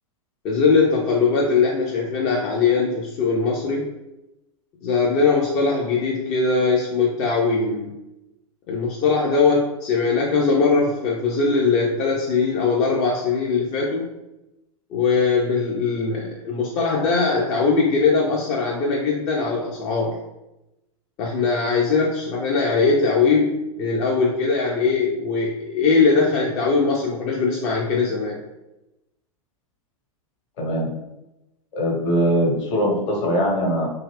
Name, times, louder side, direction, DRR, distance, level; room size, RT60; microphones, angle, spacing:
voice 1, 0.4-3.9 4.8-7.9 8.7-14.1 14.9-20.2 21.2-28.4, left 4 dB, 35° left, -2 dB, 0.5 m, -21 dB
voice 2, 30.6-30.9 31.7-33.9, equal, 55° left, -1 dB, 1.1 m, -21 dB
2.7 x 2.3 x 3.1 m, 0.94 s
figure-of-eight pair, 95°, 18 cm